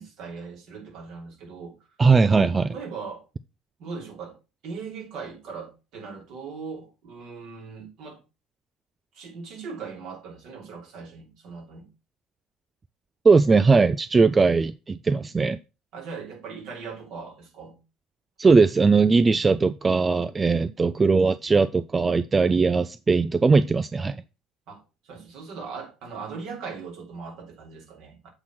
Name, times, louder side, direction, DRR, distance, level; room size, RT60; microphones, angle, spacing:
voice 1, 0.0-1.8 2.2-3.3 3.8-8.2 9.1-11.9 15.1-15.3 15.9-17.8 24.7-28.3, right 5 dB, 60° right, 3.2 m, -39 dB
voice 2, 2.0-2.7 13.2-15.6 18.4-24.2, right 4 dB, 25° right, 0.4 m, -19 dB
7.8 x 4.2 x 6.0 m
hypercardioid pair, 60°, 0 cm